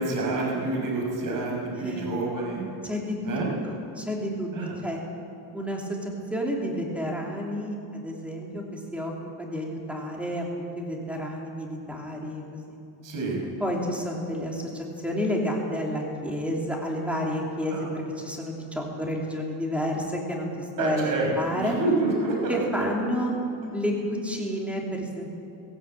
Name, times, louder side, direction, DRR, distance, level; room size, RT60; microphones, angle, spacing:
voice 1, 0.0-2.6 3.2-3.5 4.5-4.8 13.0-13.4 17.7-17.8 20.8-22.8, right 2 dB, 45° right, -2 dB, 6.0 m, -28 dB
voice 2, 2.8-3.4 3.6-5.0 5.5-9.1 9.4-12.4 12.7-12.8 13.6-21.7 22.5-23.3 23.7-25.3, equal, 5° right, -1 dB, 3.2 m, -30 dB
19.5 x 17.0 x 9.0 m, 2.8 s
cardioid pair, 180°, 46 cm